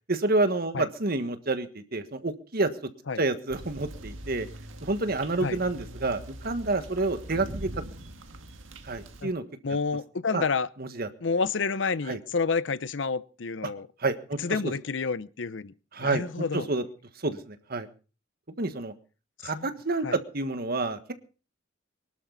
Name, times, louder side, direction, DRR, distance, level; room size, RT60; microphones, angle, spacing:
voice 1, 0.1-2.7 3.2-4.5 4.8-7.8 8.8-9.4 10.3-10.4 10.8-11.1 12.1-12.2 14.0-14.4 14.6-14.7 15.9-16.2 16.5-16.8 17.2-17.9 18.6-18.9 19.4-21.1, right 2 dB, 50° right, 1.5 m, -28 dB
sound 1, 3.5-9.2, right 1 dB, 85° right, 1.8 m, -42 dB
voice 2, 9.6-10.7 11.2-13.9 14.4-15.7 16.0-16.7 19.4-19.7 20.0-20.2, left 4 dB, 65° left, 0.7 m, -29 dB
23.5 x 12.5 x 4.0 m
head